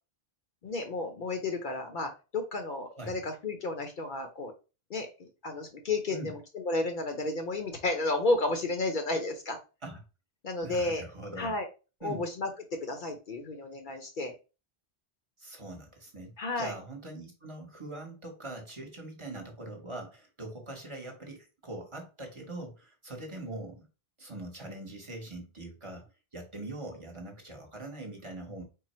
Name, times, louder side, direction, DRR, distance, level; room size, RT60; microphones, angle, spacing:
voice 1, 0.6-4.5 4.9-9.6 10.4-11.1 11.4-11.7 12.0-14.3 16.4-16.7, left 2 dB, 55° left, 5 dB, 0.7 m, -32 dB
voice 2, 10.6-11.5 12.0-12.2 15.4-23.9 24.2-26.0 26.3-28.6, right 1 dB, 30° right, 2 dB, 0.9 m, -42 dB
3.8 x 2.0 x 4.1 m, 0.31 s
omnidirectional pair, 1.0 m